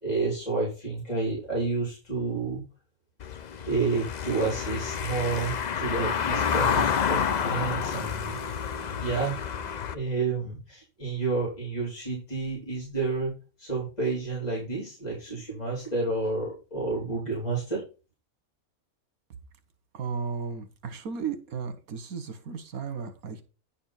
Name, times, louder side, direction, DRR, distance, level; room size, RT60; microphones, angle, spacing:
voice 1, 0.0-2.6 3.7-8.4 8.9-9.3 9.9-13.3 13.6-17.8, right 4 dB, 25° left, -5 dB, 4.0 m, -30 dB
Car passing by / Engine, 3.2-10.0, left 7 dB, 70° left, 0.4 m, -29 dB
voice 2, 19.9-23.4, right 5 dB, 75° right, 10 dB, 1.7 m, -34 dB
10.0 x 4.4 x 5.7 m, 0.32 s
omnidirectional pair, 1.5 m